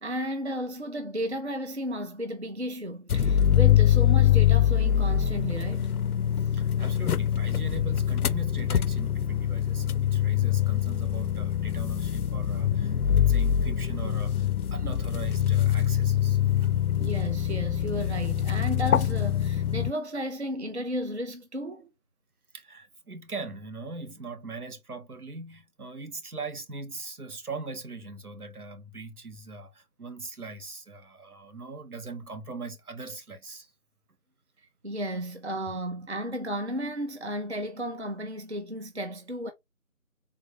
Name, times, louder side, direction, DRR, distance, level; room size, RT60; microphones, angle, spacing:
voice 1, 0.0-5.9 17.0-21.9 34.8-39.5, equal, 50° right, 0.6 m, -33 dB
sound 1, 3.1-19.9, left 10 dB, 85° left, 0.5 m, -24 dB
voice 2, 6.4-16.7 22.5-33.7 35.7-35.8, right 3 dB, 85° right, 1.2 m, -41 dB
3.8 x 2.6 x 3.0 m
figure-of-eight pair, 175°, 43 cm